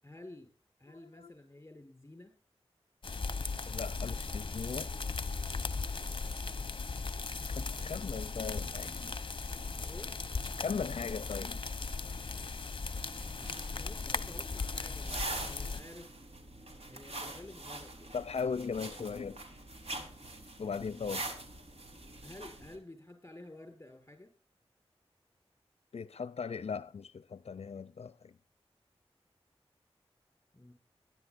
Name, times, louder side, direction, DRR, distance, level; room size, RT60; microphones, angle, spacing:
voice 1, 0.0-0.5 0.8-2.3 7.8-8.1 9.8-10.1 13.7-16.2 16.9-18.2 22.2-24.3 30.5-30.7, left 1 dB, 20° left, 6.5 m, -52 dB
voice 2, 0.9-1.3 3.7-4.9 7.5-9.2 10.6-11.6 12.5-12.6 18.1-19.4 20.6-21.3 25.9-28.3, left 5 dB, 75° left, 0.5 m, -38 dB
sound 1, 3.0-15.8, left 4 dB, 50° left, 0.9 m, -37 dB
sound 2, 13.0-22.8, right 2 dB, 70° right, 4.1 m, -44 dB
23.0 x 11.0 x 2.6 m
wide cardioid pair, 60°, 11 cm